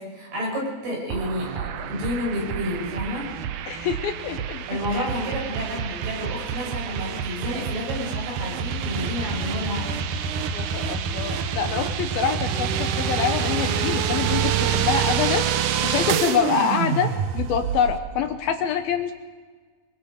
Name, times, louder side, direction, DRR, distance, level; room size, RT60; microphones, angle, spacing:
voice 1, 0.0-3.3 4.7-9.9, left 1 dB, 65° right, -1 dB, 8.5 m, -30 dB
sound 1, 1.1-18.0, right 8 dB, 90° right, 1.7 m, -27 dB
voice 2, 3.7-5.0 10.5-19.1, left 7 dB, 70° left, 6 dB, 2.5 m, -26 dB
27.0 x 21.5 x 5.3 m, 1.4 s
omnidirectional pair, 4.9 m